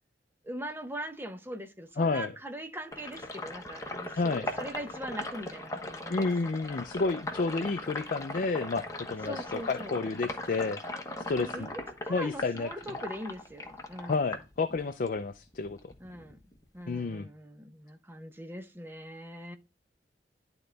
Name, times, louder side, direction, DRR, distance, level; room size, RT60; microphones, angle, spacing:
voice 1, 0.4-6.3 9.3-10.0 11.4-11.7 12.0-14.2 16.0-16.4 16.7-19.6, right 1 dB, 15° right, 0.9 m, -41 dB
voice 2, 2.0-2.3 4.2-4.5 6.1-10.8 11.3-11.7 12.1-12.7 14.1-15.9 16.9-17.3, left 3 dB, 50° left, 0.5 m, -30 dB
Sink (filling or washing), 2.9-15.2 15.5-16.9, left 2 dB, 20° left, 1.1 m, -39 dB
11.5 x 3.9 x 3.3 m
head